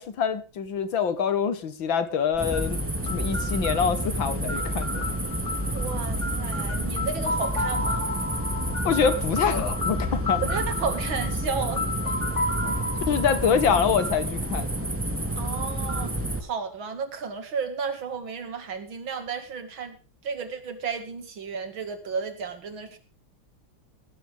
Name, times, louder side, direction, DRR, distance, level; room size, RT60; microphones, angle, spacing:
voice 1, 0.0-2.8 3.1-5.1 8.8-10.4 13.1-14.9, left 7 dB, 80° left, 11 dB, 2.3 m, -25 dB
sound 1, 2.3-16.4, right 1 dB, 5° right, 2.8 m, -29 dB
sound 2, 3.1-14.8, left 3 dB, 25° left, 2.4 m, -34 dB
voice 2, 5.7-8.0 10.4-12.8 15.4-16.1 16.4-20.0 20.2-23.0, right 5 dB, 85° right, 8 dB, 2.9 m, -33 dB
17.0 x 13.0 x 3.6 m, 0.33 s
omnidirectional pair, 2.1 m